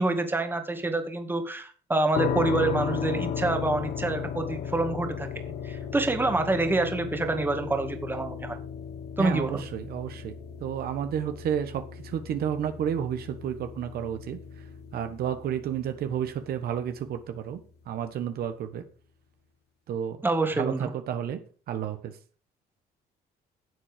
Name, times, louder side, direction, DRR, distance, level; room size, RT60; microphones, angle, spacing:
voice 1, 0.0-5.3 5.6-8.6 9.2-9.6 20.2-20.9, right 2 dB, 10° right, 6 dB, 2.0 m, -27 dB
sound 1, 2.1-17.0, left 8 dB, 75° left, 1.6 m, -35 dB
voice 2, 9.2-10.3 10.6-14.4 14.9-17.6 17.9-18.8 19.9-20.2 20.6-21.4 21.7-22.1, right 9 dB, 65° right, 8 dB, 1.4 m, -31 dB
12.0 x 7.6 x 5.1 m, 0.39 s
cardioid pair, 110°, 17 cm